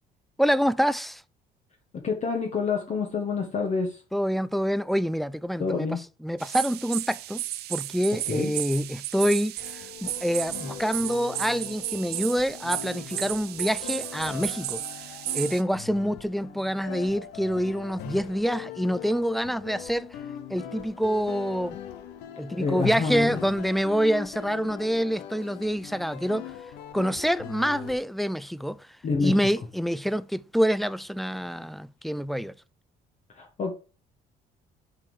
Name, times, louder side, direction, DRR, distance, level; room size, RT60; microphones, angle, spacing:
voice 1, 0.4-1.2 4.1-5.9 6.2-7.4 7.7-14.8 15.3-20.1 20.5-21.8 22.4-26.5 26.9-28.8 29.2-32.5, equal, ahead, 0.3 m, -26 dB
voice 2, 1.9-4.0 5.6-6.0 8.3-8.5 22.5-23.5 29.0-29.4 33.3-33.7, left 4 dB, 40° left, 1.4 m, -27 dB
sound 1, 6.4-15.6, right 15 dB, 75° right, 0.5 m, -34 dB
sound 2, 9.6-28.0, left 10 dB, 85° left, 0.8 m, -41 dB
7.4 x 4.5 x 4.8 m
cardioid pair, 110°, 17 cm